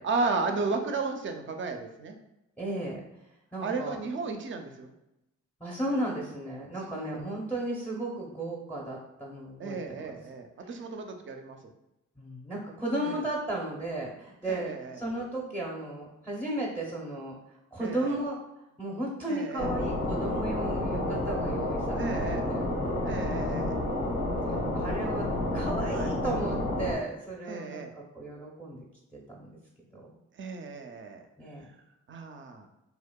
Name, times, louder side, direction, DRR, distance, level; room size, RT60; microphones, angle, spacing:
voice 1, 0.0-2.2 3.6-4.9 6.8-7.2 9.6-11.7 13.0-13.2 14.5-15.0 17.8-18.2 19.3-19.7 21.9-22.5 23.0-23.8 25.9-26.1 27.5-27.9 30.4-31.2 32.1-32.7, right 4 dB, 40° right, 5 dB, 0.4 m, -34 dB
voice 2, 2.6-3.0 3.5-4.0 5.6-10.1 12.2-17.3 17.7-18.4 18.8-23.0 23.4-23.7 24.5-28.8 29.3-29.6 29.9-30.1 31.4-31.6, right 1 dB, 5° left, -3 dB, 0.6 m, -35 dB
sound 1, 19.6-27.0, left 1 dB, 90° left, 0.7 m, -30 dB
2.7 x 2.1 x 2.2 m, 0.92 s
cardioid pair, 55°, 32 cm